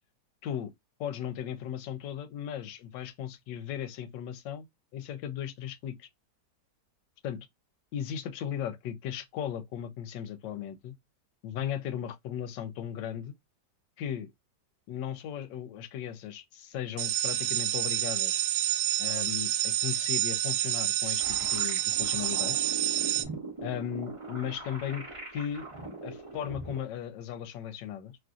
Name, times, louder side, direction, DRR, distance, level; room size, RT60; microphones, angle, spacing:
voice 1, 0.4-0.7 1.0-4.7 4.9-6.1 7.2-7.5 7.9-10.9 11.4-13.3 14.0-14.3 14.9-18.4 19.0-22.6 23.6-25.1 25.3-25.7 26.0-28.1, left 9 dB, 80° left, 1.2 m, -36 dB
sound 1, 17.0-23.2, right 14 dB, 85° right, 1.2 m, -28 dB
sound 2, 21.2-26.8, right 3 dB, 25° right, 0.7 m, -41 dB
3.1 x 2.5 x 2.3 m
omnidirectional pair, 1.9 m